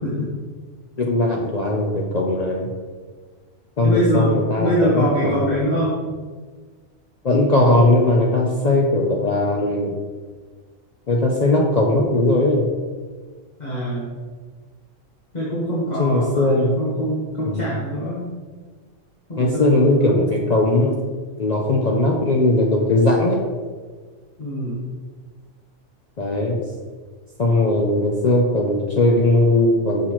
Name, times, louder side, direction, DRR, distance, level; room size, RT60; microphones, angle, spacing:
voice 1, 0.0-0.3 3.8-6.0 13.6-14.1 15.3-18.3 19.3-19.7 20.0-20.2 24.4-24.9, equal, 35° left, -8 dB, 1.3 m, -24 dB
voice 2, 1.0-2.7 3.8-5.4 7.2-9.9 11.1-12.6 16.0-16.7 17.4-17.7 19.4-21.0 21.4-23.4 26.2-26.6 27.4-30.1, left 1 dB, 50° left, -1 dB, 0.5 m, -19 dB
6.3 x 5.8 x 3.0 m, 1.5 s
omnidirectional pair, 1.4 m